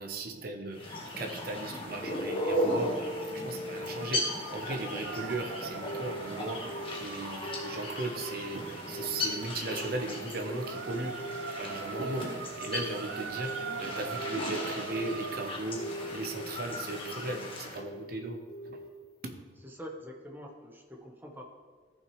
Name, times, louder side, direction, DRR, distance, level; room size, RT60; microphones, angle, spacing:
voice 1, 0.0-6.6 7.0-11.2 11.6-15.8 16.1-18.8 19.2-19.3, right 2 dB, 55° right, 5 dB, 0.9 m, -37 dB
sound 1, 0.7-17.8, left 1 dB, 30° left, 1.5 m, -37 dB
Telephone, 2.0-5.3 5.9-6.2 6.5-7.9 8.2-8.6 8.9-12.3 12.7-13.1 13.3-15.4 15.8-16.6 17.0-17.4 17.7-18.1 18.5-18.9 19.2-19.3, equal, 60° left, 2.3 m, -42 dB
sound 2, 5.0-15.6, right 7 dB, 85° right, 0.4 m, -42 dB
voice 2, 19.6-21.4, equal, 10° right, 1 dB, 1.0 m, -45 dB
13.5 x 5.9 x 3.2 m, 1.5 s
head